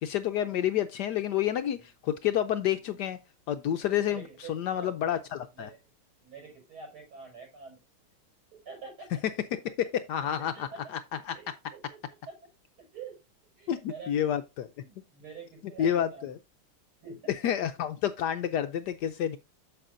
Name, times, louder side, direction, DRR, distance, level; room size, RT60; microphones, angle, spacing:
voice 1, 0.0-3.2 3.5-4.2 4.5-5.7 9.5-11.4 13.7-14.7 15.8-16.4 17.4-19.4, left 10 dB, 75° left, 0.9 m, -29 dB
voice 2, 4.1-4.9 5.5-5.8 6.2-7.8 8.5-9.1 10.5-10.8 11.3-12.0 12.3-12.4 12.8-13.2 13.6-14.2 14.8-16.4 17.0-17.3, right 5 dB, 80° right, 6.4 m, -46 dB
8.8 x 7.3 x 2.5 m
omnidirectional pair, 2.3 m